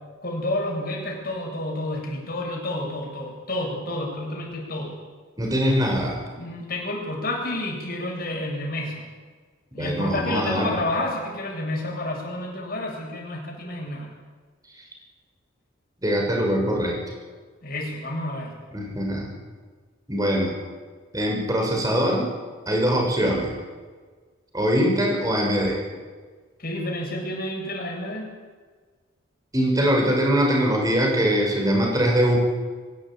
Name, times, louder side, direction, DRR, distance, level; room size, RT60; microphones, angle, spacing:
voice 1, 0.2-5.0 6.4-9.0 9.7-14.1 17.6-18.5 26.6-28.3, left 1 dB, 45° left, -1 dB, 7.9 m, -30 dB
voice 2, 5.4-6.2 9.8-10.8 16.0-17.0 18.7-19.3 20.1-20.5 21.1-22.3 22.7-23.6 24.5-25.8 29.5-32.4, equal, 15° right, 0 dB, 6.3 m, -22 dB
25.0 x 17.0 x 9.2 m, 1.5 s
head